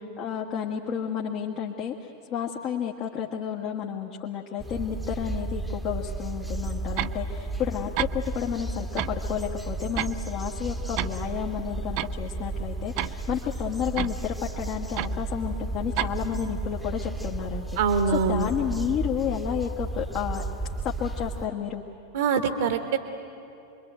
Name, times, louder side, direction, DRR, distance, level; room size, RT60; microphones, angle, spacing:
voice 1, 0.2-17.7 18.3-20.4 20.8-21.8, left 8 dB, 40° left, -2 dB, 1.6 m, -31 dB
sound 1, 4.6-21.5, right 2 dB, ahead, 1.3 m, -33 dB
sound 2, 7.0-7.2 7.7-7.8 8.0-8.1 9.0-9.2 9.5-10.2 10.6-11.2 11.5-11.6 12.0-12.1 13.0-13.2 14.0-14.2 15.0-15.1 16.0-16.1, right 16 dB, 45° right, 0.6 m, -30 dB
voice 2, 17.8-18.5 22.1-23.0, right 6 dB, 60° right, 7 dB, 1.4 m, -24 dB
26.5 x 22.5 x 9.1 m, 2.8 s
figure-of-eight pair, 90°, 0 cm